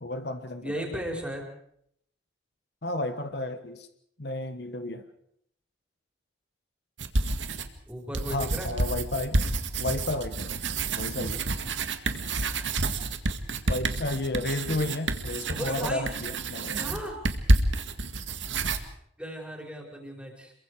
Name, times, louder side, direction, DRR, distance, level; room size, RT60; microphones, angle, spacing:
voice 1, 0.0-1.1 2.8-3.9 4.2-5.0 8.3-9.5 9.8-10.6 10.9-11.4 13.7-17.0, left 2 dB, 60° left, 8 dB, 1.4 m, -32 dB
voice 2, 0.6-1.5 7.9-8.7 15.6-16.1 16.7-17.2 19.2-20.5, equal, 5° right, 1 dB, 4.9 m, -35 dB
sound 1, 7.0-7.8 8.1-18.8, right 2 dB, 85° right, 2.0 m, -29 dB
28.0 x 23.0 x 4.9 m, 0.71 s
head